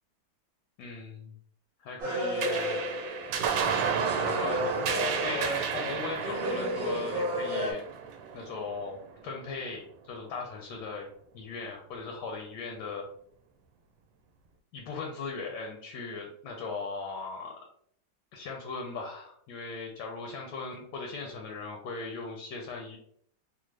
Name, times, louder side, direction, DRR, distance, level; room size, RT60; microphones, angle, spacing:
voice 1, 0.8-1.3 1.8-2.8 4.1-4.7 5.2-7.8 8.3-11.1 11.3-13.0 14.7-17.5 18.3-23.0, left 3 dB, 70° left, 1 dB, 1.1 m, -38 dB
sound 1, 2.0-3.5 3.8-5.8 6.2-7.7, equal, 55° right, 1.2 m, -32 dB
sound 2, 2.4-9.2, right 7 dB, 90° right, 1.3 m, -32 dB
3.4 x 2.0 x 3.2 m, 0.66 s
omnidirectional pair, 2.0 m